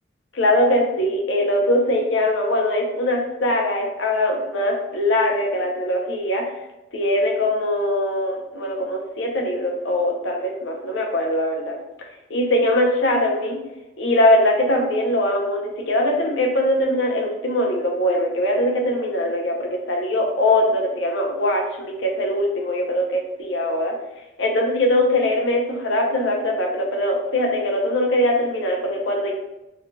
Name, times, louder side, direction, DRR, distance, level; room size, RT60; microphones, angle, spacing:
voice 1, 0.3-6.4 6.9-11.8 12.3-13.6 14.0-23.9 24.4-29.4, left 1 dB, 85° left, 0 dB, 0.7 m, -21 dB
4.7 x 2.7 x 2.2 m, 0.95 s
head